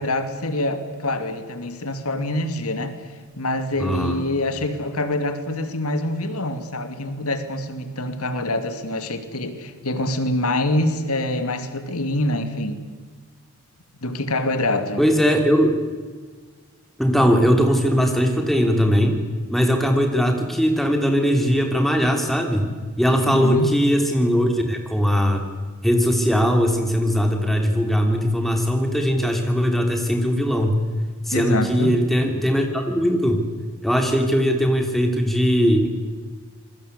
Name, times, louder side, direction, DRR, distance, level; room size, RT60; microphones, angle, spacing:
voice 1, 0.0-12.8 14.0-15.0 23.3-23.7 31.3-32.0, left 1 dB, 90° left, 9 dB, 2.6 m, -25 dB
voice 2, 3.8-4.2 15.0-15.8 17.0-19.2 19.5-22.7 23.0-25.4 25.8-30.8 31.3-33.5 33.8-35.9, equal, ahead, 3 dB, 3.3 m, -20 dB
27.5 x 21.0 x 8.2 m, 1.4 s
head